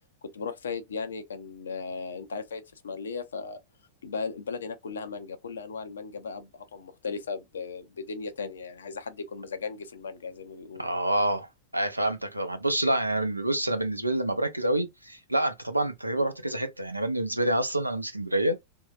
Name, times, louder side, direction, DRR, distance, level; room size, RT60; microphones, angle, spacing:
voice 1, 0.2-3.6 4.0-10.8, left 5 dB, 70° left, 0.5 m, -36 dB
voice 2, 10.8-11.5 11.7-18.6, right 1 dB, 85° right, 0.5 m, -27 dB
3.1 x 2.7 x 2.4 m
figure-of-eight pair, 90°, 0 cm